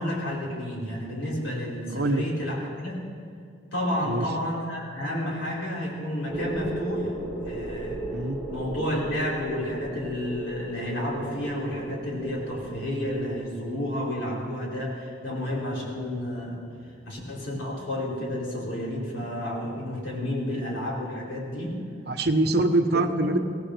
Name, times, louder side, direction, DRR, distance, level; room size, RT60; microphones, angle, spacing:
voice 1, 0.0-3.1 3.7-7.1 7.4-8.0 8.5-16.6 17.0-21.8 22.9-23.3, left 1 dB, 90° left, -4 dB, 4.8 m, -31 dB
voice 2, 1.9-2.2 4.1-4.2 8.1-8.4 22.1-23.4, right 2 dB, 60° right, 6 dB, 1.1 m, -24 dB
sound 1, 6.3-14.1, right 2 dB, 10° left, 2.4 m, -36 dB
24.0 x 17.0 x 3.4 m, 2.3 s
head